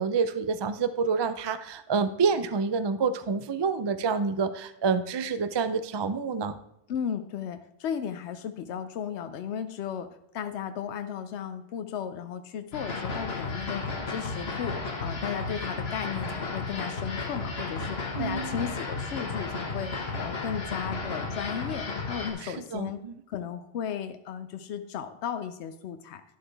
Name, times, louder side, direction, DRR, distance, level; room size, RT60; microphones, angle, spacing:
voice 1, 0.0-6.6 18.2-18.5 22.4-23.1, right 5 dB, 45° right, 11 dB, 0.3 m, -28 dB
voice 2, 6.9-19.9 20.2-23.0 23.3-26.2, left 8 dB, 90° left, 9 dB, 0.9 m, -35 dB
sound 1, 12.7-22.3, left 3 dB, 70° left, 1.7 m, -33 dB
11.0 x 7.9 x 3.4 m, 0.79 s
omnidirectional pair, 1.1 m